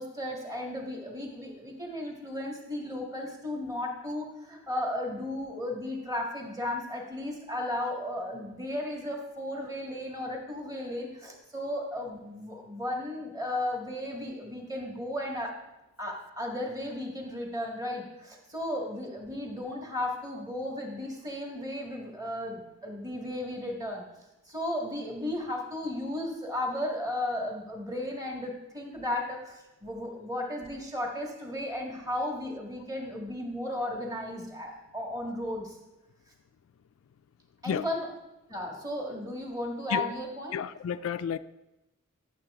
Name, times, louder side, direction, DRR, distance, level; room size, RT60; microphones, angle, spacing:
voice 1, 0.0-15.6 16.0-24.0 24.5-35.8 37.6-38.1 38.5-40.6, left 1 dB, 15° right, 0 dB, 1.8 m, -35 dB
voice 2, 40.5-41.4, left 8 dB, 65° left, 13 dB, 0.3 m, -31 dB
11.5 x 7.2 x 3.7 m, 0.96 s
head